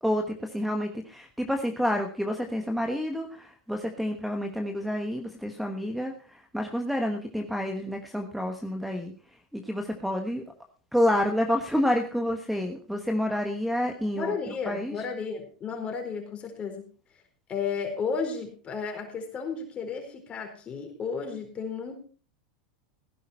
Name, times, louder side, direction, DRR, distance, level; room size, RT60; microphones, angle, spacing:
voice 1, 0.0-9.1 9.5-10.4 10.9-14.3 14.7-14.9, equal, ahead, 5 dB, 1.3 m, -29 dB
voice 2, 14.1-16.8 17.5-22.0, left 5 dB, 30° left, 4 dB, 4.3 m, -33 dB
16.5 x 10.0 x 4.4 m, 0.40 s
supercardioid pair, 125°, 4 cm